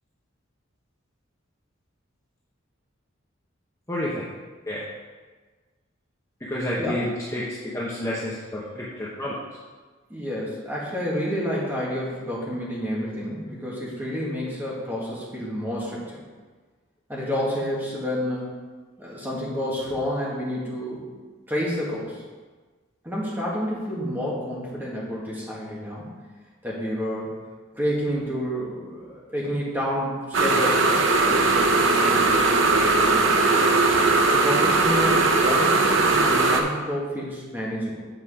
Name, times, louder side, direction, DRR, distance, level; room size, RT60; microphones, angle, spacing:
voice 1, 3.9-4.2 4.7-4.8 6.4-7.4 7.7-9.4, left 1 dB, 15° left, -7 dB, 0.9 m, -29 dB
voice 2, 10.1-16.2 17.1-18.6 19.0-21.2 21.5-22.2 23.0-26.1 26.6-27.3 27.7-31.0 31.3-33.3 34.3-38.0, equal, 10° right, -6 dB, 1.9 m, -29 dB
sound 1, 30.3-36.6, right 3 dB, 75° right, 0.8 m, -19 dB
7.9 x 5.2 x 5.0 m, 1.4 s
head